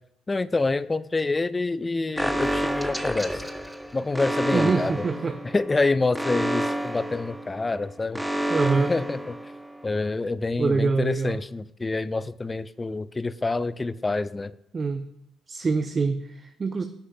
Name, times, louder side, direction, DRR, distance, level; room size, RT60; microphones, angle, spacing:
voice 1, 0.3-3.4 3.9-5.0 5.4-8.2 8.8-9.4 9.8-14.5, left 3 dB, 25° left, 16 dB, 0.4 m, -27 dB
Alarm, 2.2-9.9, right 1 dB, ahead, 0.8 m, -29 dB
voice 2, 4.5-5.4 8.5-8.9 10.6-11.4 14.7-15.1 15.5-16.8, right 4 dB, 35° right, 8 dB, 0.5 m, -25 dB
17.0 x 6.4 x 2.3 m, 0.80 s
figure-of-eight pair, 45°, 0 cm